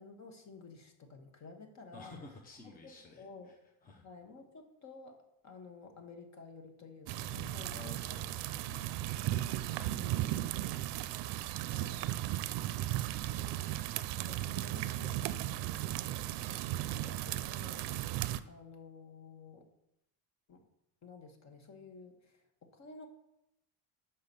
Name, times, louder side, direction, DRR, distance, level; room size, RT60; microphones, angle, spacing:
voice 1, 0.0-2.1 2.8-3.5 4.0-5.2 5.4-8.2 8.5-8.9 9.6-10.7 11.7-12.1 13.4-13.7 14.3-16.3 16.7-17.9 18.5-19.7 20.5-20.6 21.0-23.1, left 4 dB, 40° left, 5 dB, 1.2 m, -53 dB
voice 2, 1.9-3.6 3.8-4.0 7.3-10.6 11.3-11.9 13.1-13.8 16.4-17.1, left 3 dB, 20° left, 1 dB, 0.8 m, -55 dB
sound 1, 7.1-18.4, right 14 dB, 70° right, 0.5 m, -36 dB
5.7 x 5.5 x 6.8 m, 0.84 s
cardioid pair, 155°, 42 cm